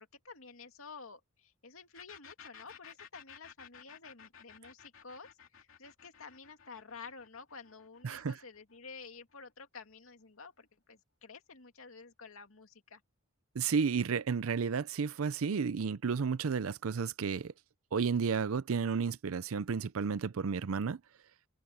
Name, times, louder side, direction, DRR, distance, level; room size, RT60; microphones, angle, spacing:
voice 1, 0.0-13.0, left 4 dB, 85° left, 2.4 m, -51 dB
sound 1, 1.9-9.5, left 7 dB, 70° left, 3.1 m, -55 dB
voice 2, 8.0-8.3 13.6-17.5 17.9-21.0, right 5 dB, 85° right, 0.5 m, -32 dB
head